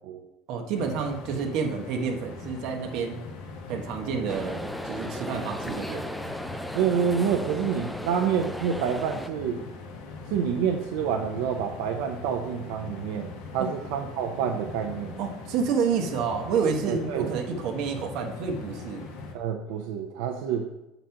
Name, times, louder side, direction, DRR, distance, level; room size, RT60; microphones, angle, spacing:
voice 1, 0.5-3.2 3.7-6.1 13.6-13.7 15.2-19.1, right 5 dB, 50° right, 2 dB, 1.2 m, -29 dB
sound 1, 0.7-19.3, left 4 dB, 65° left, 1.1 m, -41 dB
sound 2, 4.3-9.3, equal, ahead, 0.3 m, -36 dB
voice 2, 6.7-9.6 10.3-15.2 16.9-17.3 19.3-20.7, right 7 dB, 80° right, 3 dB, 0.6 m, -28 dB
7.5 x 4.0 x 5.7 m, 0.93 s
cardioid pair, 170°, 0 cm